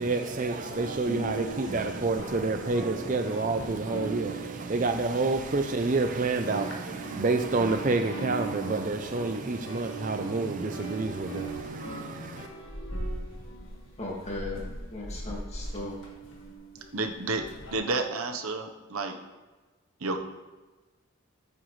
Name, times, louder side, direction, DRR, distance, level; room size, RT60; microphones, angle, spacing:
voice 1, 0.0-12.5, right 3 dB, 40° right, 0.5 m, -28 dB
sound 1, 0.7-6.1 6.3-17.8, right 2 dB, 65° left, 1.9 m, -39 dB
voice 2, 14.0-14.6 14.9-15.9, left 2 dB, 30° left, 2.0 m, -36 dB
voice 3, 16.9-17.4 17.7-19.2 20.0-20.2, right 3 dB, 80° right, 1.0 m, -30 dB
14.0 x 7.6 x 3.2 m
head